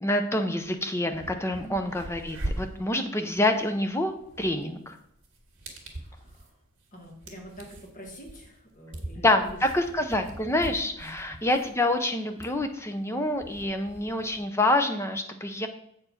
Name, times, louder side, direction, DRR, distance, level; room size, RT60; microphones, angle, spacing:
voice 1, 0.0-4.1 4.4-4.9 9.2-15.7, left 1 dB, 10° left, 6 dB, 0.6 m, -27 dB
sound 1, 0.6-0.7 1.0-14.4, right 1 dB, 55° right, 2.1 m, -42 dB
voice 2, 1.5-1.8 6.0-6.5 6.9-9.6 11.0-11.4, equal, 35° left, 0 dB, 1.7 m, -46 dB
7.8 x 4.6 x 5.8 m, 0.74 s
head